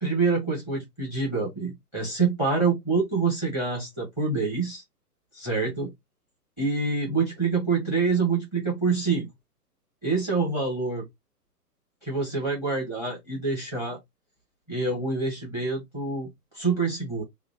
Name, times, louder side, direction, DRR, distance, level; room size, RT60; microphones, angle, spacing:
voice 1, 0.0-4.8 5.3-5.9 6.6-9.3 10.0-11.0 12.0-14.0 14.7-16.3 16.5-17.2, right 4 dB, 10° right, 0.9 m, -26 dB
3.0 x 2.2 x 3.9 m
figure-of-eight pair, 125°, 48 cm